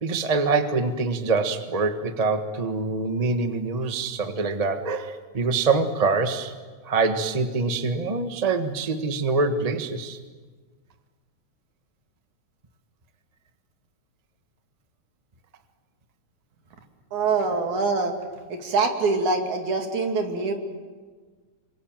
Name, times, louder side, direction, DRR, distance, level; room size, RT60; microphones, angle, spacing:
voice 1, 0.0-6.5 6.9-10.2, right 4 dB, 45° right, 7 dB, 0.5 m, -25 dB
voice 2, 17.1-18.1 18.5-20.5, right 4 dB, 70° right, 3 dB, 4.1 m, -24 dB
27.0 x 25.5 x 7.7 m, 1.4 s
omnidirectional pair, 3.6 m